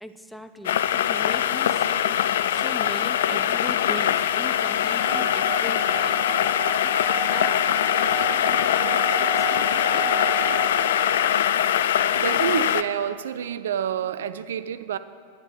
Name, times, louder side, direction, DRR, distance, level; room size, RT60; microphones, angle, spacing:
voice 1, 0.0-2.2 2.5-6.3 6.8-6.9 7.3-7.6 7.9-10.2, equal, ahead, 9 dB, 0.5 m, -40 dB
sound 1, 0.6-12.8, left 10 dB, 60° left, 0.3 m, -22 dB
Wind instrument woodwind instrument, 5.0-11.1, right 3 dB, 40° right, 2.8 m, -32 dB
voice 2, 12.2-15.0, right 9 dB, 60° right, 14 dB, 0.4 m, -28 dB
9.5 x 8.3 x 6.4 m, 2.4 s
figure-of-eight pair, 90°, 0 cm